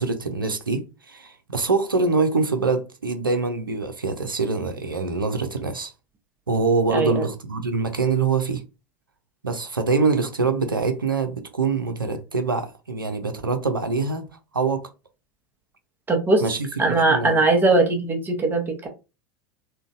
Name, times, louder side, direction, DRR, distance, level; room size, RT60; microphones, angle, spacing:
voice 1, 0.0-5.9 6.5-8.6 9.4-14.3 14.5-14.9 16.4-17.4, right 4 dB, 85° right, 0.5 m, -24 dB
voice 2, 16.1-16.4 16.8-18.9, right 2 dB, 20° right, 0.9 m, -20 dB
3.7 x 2.2 x 2.5 m
figure-of-eight pair, 85°, 11 cm